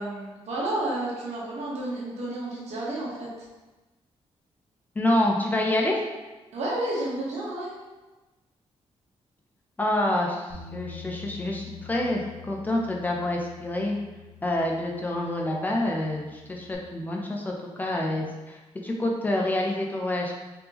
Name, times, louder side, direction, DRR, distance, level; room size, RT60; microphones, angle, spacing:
voice 1, 0.0-3.3 6.5-7.7, right 1 dB, 80° right, -5 dB, 1.1 m, -31 dB
voice 2, 5.0-6.0 9.8-13.9 14.4-20.3, left 1 dB, 15° left, -1 dB, 0.4 m, -27 dB
Bass guitar, 10.5-16.7, left 8 dB, 45° right, 1.5 m, -46 dB
3.4 x 3.4 x 2.9 m, 1.1 s
wide cardioid pair, 170°, 11 cm